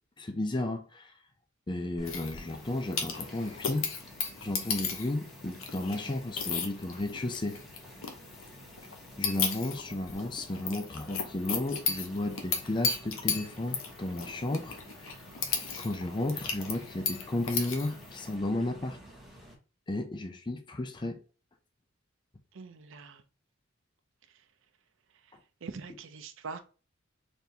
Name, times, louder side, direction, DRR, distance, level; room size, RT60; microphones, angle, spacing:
voice 1, 0.2-1.1 1.7-3.9 4.4-7.6 9.2-15.1 15.8-19.0 19.9-21.2, left 2 dB, 25° left, 0.5 m, -33 dB
sound 1, 2.0-18.3, left 6 dB, 90° left, 0.9 m, -36 dB
sound 2, 2.0-19.5, equal, ahead, 1.1 m, -51 dB
voice 2, 22.5-23.2 24.3-24.5 25.1-26.6, right 4 dB, 65° right, 0.5 m, -44 dB
4.2 x 3.4 x 2.8 m
head